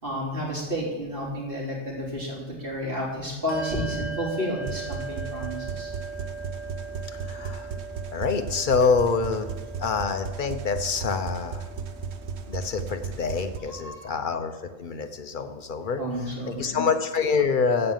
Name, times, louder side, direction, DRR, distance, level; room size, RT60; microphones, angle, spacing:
voice 1, 0.0-5.9 13.7-14.2 16.0-16.8, equal, 50° right, -4 dB, 3.4 m, -31 dB
Bell, 3.5-13.5, right 4 dB, 25° right, 4.7 m, -40 dB
sound 1, 4.6-13.6, right 5 dB, 70° right, 1.1 m, -36 dB
voice 2, 7.1-7.7 8.1-9.5 9.8-11.7 12.5-16.0 16.5-17.9, left 5 dB, 45° left, 8 dB, 1.0 m, -26 dB
15.0 x 5.4 x 7.4 m, 1.2 s
omnidirectional pair, 1.2 m